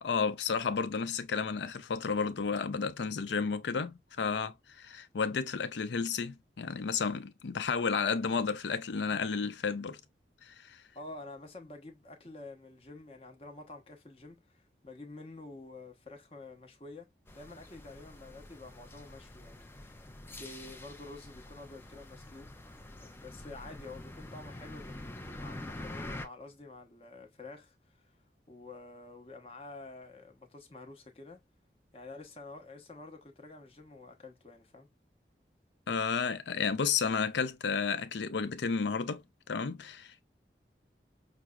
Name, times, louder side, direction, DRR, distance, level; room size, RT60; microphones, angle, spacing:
voice 1, 0.0-10.0 10.4-10.8 35.9-40.2, left 5 dB, 85° left, 0.5 m, -32 dB
voice 2, 10.9-20.0 20.3-22.5 23.0-28.1 28.5-31.4 31.9-34.9, left 2 dB, 35° left, 0.8 m, -49 dB
sound 1, 17.3-26.3, left 1 dB, 15° left, 0.3 m, -46 dB
5.8 x 2.0 x 2.3 m
head